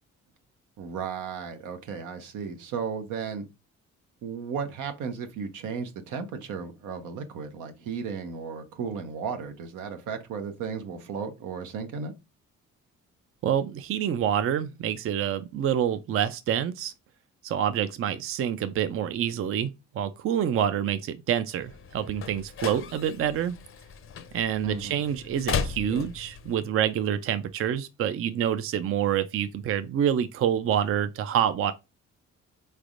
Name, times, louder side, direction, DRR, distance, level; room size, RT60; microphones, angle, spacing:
voice 1, 0.8-3.4 4.2-12.1 24.6-25.0, right 6 dB, 85° right, 0.8 m, -35 dB
voice 2, 13.4-16.9 17.4-23.6 24.3-31.7, right 9 dB, 45° right, 0.4 m, -27 dB
sound 1, 21.6-26.6, left 6 dB, 45° left, 0.6 m, -36 dB
4.2 x 3.3 x 2.4 m
cardioid pair, 90°, 30 cm